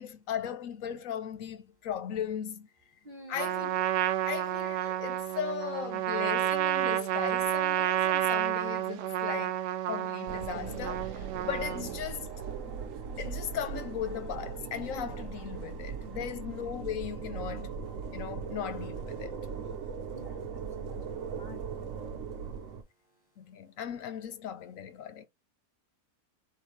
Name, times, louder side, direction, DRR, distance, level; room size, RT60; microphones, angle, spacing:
voice 1, 0.0-2.7 3.3-3.9 4.3-9.6 9.9-12.3 13.2-17.8 18.1-19.4 23.4-25.2, left 8 dB, 65° left, 0.9 m, -37 dB
voice 2, 3.0-3.5 20.1-20.4 20.7-21.7, equal, 25° right, 1.0 m, -51 dB
Trumpet, 3.4-12.0, right 12 dB, 80° right, 1.2 m, -30 dB
Vancouver sky train, 10.3-22.8, right 6 dB, 60° right, 1.1 m, -39 dB
4.4 x 3.9 x 3.0 m
omnidirectional pair, 1.8 m